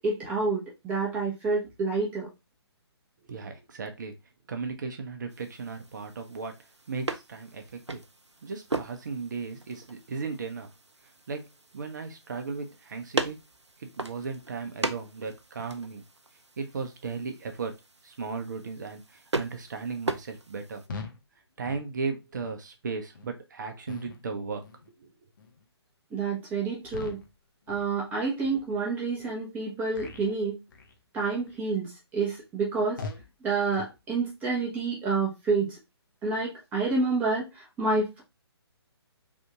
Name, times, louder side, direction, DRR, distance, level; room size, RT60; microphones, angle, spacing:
voice 1, 0.0-2.3 26.1-27.2 27.7-30.6 31.1-33.0 33.4-35.8 36.2-38.2, right 4 dB, 10° right, -3 dB, 0.9 m, -28 dB
voice 2, 3.3-4.1 4.5-6.6 6.9-8.0 8.4-10.7 11.3-11.5 11.7-13.4 13.8-16.0 16.6-17.7 18.0-20.8 21.6-24.6 24.9-25.1, right 4 dB, 45° right, 6 dB, 0.8 m, -36 dB
sound 1, 5.3-20.9, right 3 dB, 85° right, 0.6 m, -38 dB
sound 2, 20.9-21.2 21.6-21.9 22.4-22.6 23.1-23.3 23.9-24.2 24.6-24.9 25.4-25.6 26.1-26.3 26.9-27.3 27.7-28.0 28.4-28.6 29.2-29.3 29.9-30.3 30.7-31.0 31.5-31.7 32.2-32.3 33.0-33.3 33.7-34.0, left 4 dB, 45° left, 0.7 m, -42 dB
3.6 x 2.6 x 3.5 m, 0.23 s
figure-of-eight pair, 135°, 14 cm